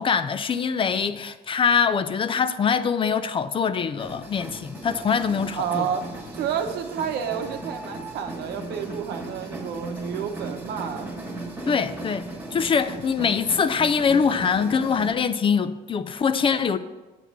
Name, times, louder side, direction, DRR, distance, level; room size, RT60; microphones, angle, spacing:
voice 1, 0.0-5.9 11.7-16.8, left 6 dB, 30° left, 0.4 m, -23 dB
sound 1, 4.0-15.1, right 2 dB, 10° right, 1.6 m, -37 dB
voice 2, 5.5-6.1 6.3-11.1, right 8 dB, 75° right, 0.9 m, -30 dB
8.5 x 4.1 x 7.0 m
cardioid pair, 110°, 17 cm